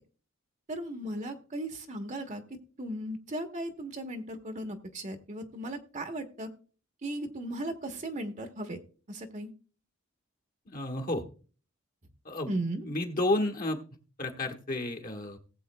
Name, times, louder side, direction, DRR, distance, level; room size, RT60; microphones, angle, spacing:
voice 1, 0.7-6.5 7.0-8.8 9.1-9.5 12.5-12.8, right 1 dB, 40° right, 6 dB, 1.0 m, -36 dB
voice 2, 10.7-11.2 12.2-12.5 12.8-13.8 14.2-15.4, left 2 dB, 45° left, 3 dB, 1.4 m, -31 dB
18.5 x 7.7 x 2.2 m, 0.39 s
head